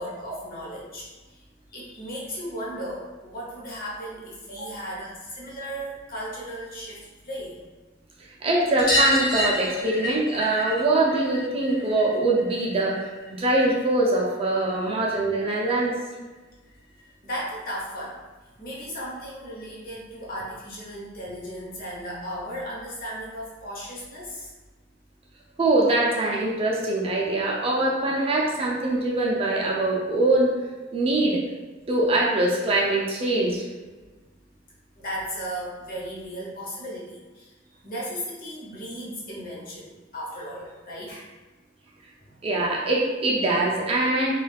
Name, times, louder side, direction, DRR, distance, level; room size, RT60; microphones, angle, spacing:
voice 1, 0.0-1.4 1.7-7.6 17.2-18.2 18.6-24.5 35.0-41.3 42.2-42.3, equal, 45° left, -5 dB, 0.8 m, -36 dB
voice 2, 8.4-15.9 25.6-30.5 30.9-31.4 31.9-33.6 42.4-44.4, right 2 dB, 30° right, -3 dB, 0.4 m, -23 dB
sound 1, 8.8-13.9 14.2-15.3 16.7-16.8 17.0-17.1 17.4-17.5 18.8-18.9 19.2-19.3 19.6-19.7 20.9-21.0 21.8-21.9, left 1 dB, 85° left, 1.0 m, -29 dB
2.3 x 2.3 x 3.3 m, 1.3 s
head